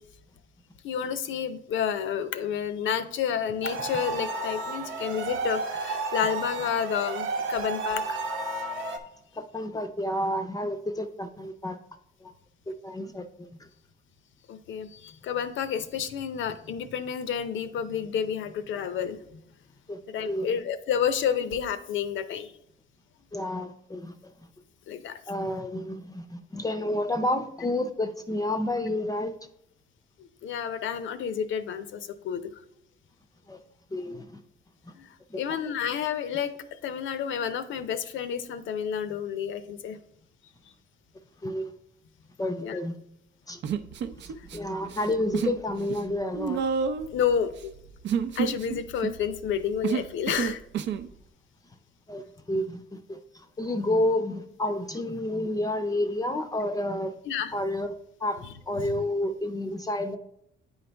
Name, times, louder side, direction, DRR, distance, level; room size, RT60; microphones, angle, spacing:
voice 1, 0.8-8.2 14.5-19.2 20.1-22.5 24.9-25.2 30.4-32.4 35.0-35.1 35.4-36.5 36.8-40.0 42.6-42.8 47.1-47.5 48.4-50.6 57.3-57.5, left 8 dB, 75° left, 11 dB, 0.6 m, -30 dB
sound 1, 3.6-9.0, right 3 dB, 85° right, 0.9 m, -32 dB
voice 2, 9.4-11.8 12.2-12.3 12.7-13.7 19.9-20.0 20.2-20.6 23.3-24.5 25.3-29.4 33.5-33.6 33.9-34.4 34.9-35.0 35.3-35.6 41.4-41.8 42.4-43.0 43.5-43.6 44.2-46.6 52.1-57.1 57.5-57.9 58.2-60.2, left 1 dB, 20° left, 8 dB, 0.5 m, -30 dB
Human voice, 43.6-44.6 44.9-45.6 45.9-51.1, right 7 dB, 65° right, 0.5 m, -30 dB
9.5 x 4.0 x 3.4 m, 0.76 s
cardioid pair, 90°, 20 cm